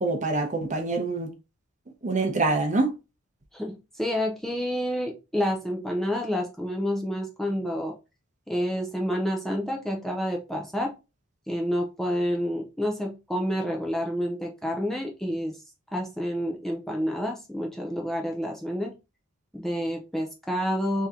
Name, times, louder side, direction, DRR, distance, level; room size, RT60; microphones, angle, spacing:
voice 1, 0.0-1.3 2.0-2.9, right 3 dB, 35° right, 0.7 m, -25 dB
voice 2, 3.5-7.9 8.5-10.9 11.5-15.6 15.9-18.9 19.5-21.1, equal, ahead, 0.5 m, -29 dB
3.6 x 2.8 x 3.6 m
head